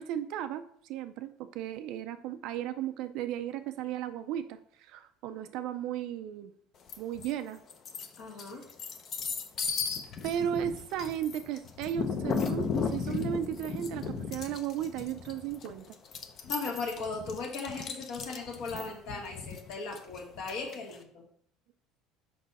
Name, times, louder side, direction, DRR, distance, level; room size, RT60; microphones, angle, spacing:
voice 1, 0.0-6.5 7.0-7.6 8.4-8.5 10.2-15.9 18.8-18.9, right 10 dB, 55° right, 9 dB, 0.4 m, -35 dB
sound 1, 6.9-7.3 7.7-21.0, left 5 dB, 30° left, 0.6 m, -36 dB
voice 2, 8.2-8.6 16.4-21.2, left 4 dB, 55° left, 1 dB, 1.8 m, -37 dB
6.2 x 5.4 x 4.1 m, 0.63 s
cardioid pair, 175°, 0 cm